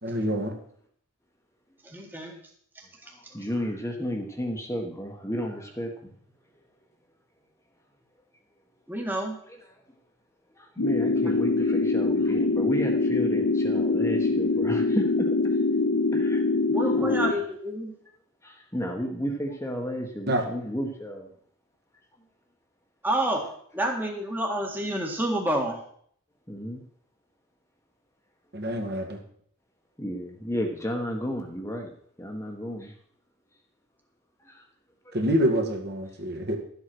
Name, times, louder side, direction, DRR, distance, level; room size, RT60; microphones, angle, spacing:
voice 1, 0.0-0.5 20.3-20.4 28.5-29.2 35.1-36.6, equal, 45° right, 3 dB, 2.1 m, -26 dB
voice 2, 1.8-2.3 8.9-9.4 16.7-17.9 23.0-23.5 23.7-25.8, right 1 dB, 10° right, 1 dB, 1.7 m, -28 dB
voice 3, 3.3-6.1 9.5-9.6 10.6-15.3 16.1-16.4 16.9-17.4 18.4-21.3 26.5-26.8 30.0-31.9 32.2-32.9 34.5-34.6, equal, 15° left, 1 dB, 1.4 m, -32 dB
sound 1, 10.8-17.3, left 3 dB, 70° left, 0.7 m, -24 dB
12.5 x 8.1 x 6.1 m, 0.62 s
head